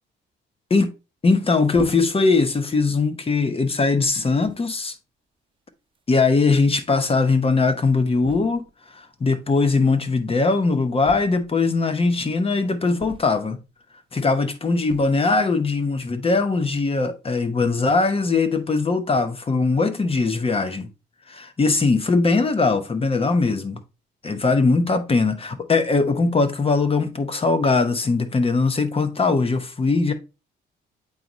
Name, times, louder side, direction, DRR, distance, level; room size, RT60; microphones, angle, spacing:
voice 1, 1.2-5.0 6.1-8.6 9.0-13.6 14.1-20.9 21.3-23.8 24.2-30.1, left 3 dB, 30° left, 0.9 m, -20 dB
sound 1, 1.7-2.3 3.1-3.3 4.1-4.2 4.4-4.7 5.9-6.0 6.3-6.4 6.6-6.7 8.2-8.8 11.0-11.7 13.0-13.6 14.8-15.3, right 4 dB, 25° right, 0.9 m, -40 dB
8.4 x 4.0 x 3.0 m
cardioid pair, 90°, 20 cm